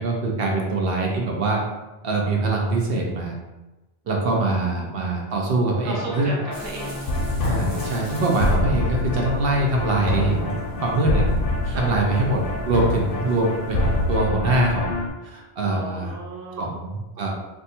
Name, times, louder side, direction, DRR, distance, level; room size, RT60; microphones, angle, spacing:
voice 1, 0.0-1.6 2.0-3.3 4.1-6.3 7.4-11.3 11.8-16.1 16.6-17.3, right 2 dB, 65° right, -1 dB, 0.8 m, -23 dB
voice 2, 4.0-4.9 5.8-7.0 7.3-7.9 11.7-12.1 15.6-16.7, right 1 dB, 20° right, -3 dB, 0.5 m, -35 dB
sound 1, 5.9-15.1, left 2 dB, 65° left, 0.8 m, -26 dB
sound 2, 6.5-14.1, equal, 35° right, 0.9 m, -41 dB
2.6 x 2.3 x 4.0 m, 1.1 s
omnidirectional pair, 1.1 m